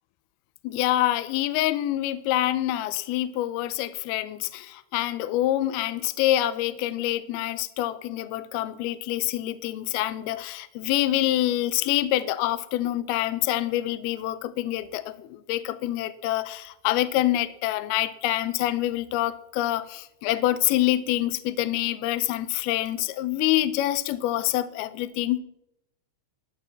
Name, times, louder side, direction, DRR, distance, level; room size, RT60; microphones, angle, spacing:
voice 1, 0.6-25.4, left 14 dB, 90° left, 14 dB, 2.2 m, -26 dB
12.5 x 6.3 x 7.4 m, 0.78 s
omnidirectional pair, 5.3 m